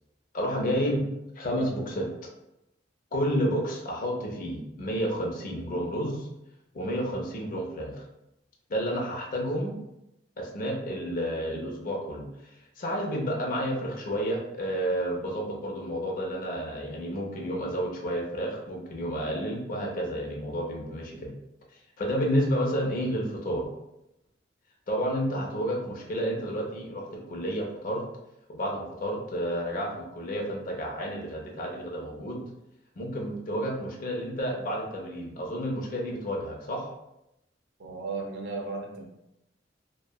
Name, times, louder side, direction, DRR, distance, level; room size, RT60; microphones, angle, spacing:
voice 1, 0.3-1.0 1.4-2.1 3.1-6.3 6.7-8.0 8.7-9.8 10.4-12.3 12.8-21.3 22.0-23.6 24.9-28.0 28.5-32.4 33.0-36.9, equal, 50° left, 0 dB, 0.5 m, -30 dB
voice 2, 37.8-39.0, right 3 dB, 70° right, 1 dB, 0.5 m, -35 dB
2.7 x 2.2 x 2.2 m, 0.87 s
head